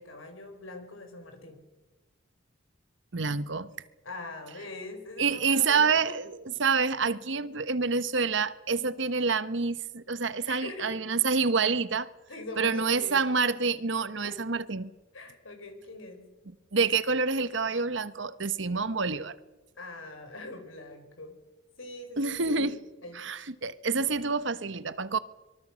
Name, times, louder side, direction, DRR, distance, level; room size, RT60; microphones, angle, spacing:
voice 1, 0.0-1.6 4.0-6.2 10.5-10.9 12.3-13.3 14.2-14.4 15.1-16.2 19.8-21.4 21.8-22.7 23.0-23.3, left 2 dB, 85° left, 5.5 m, -42 dB
voice 2, 3.1-3.7 5.2-12.1 12.6-14.9 16.7-19.3 22.2-22.8 23.1-25.2, right 4 dB, 65° right, 1.1 m, -27 dB
25.5 x 23.5 x 6.3 m
head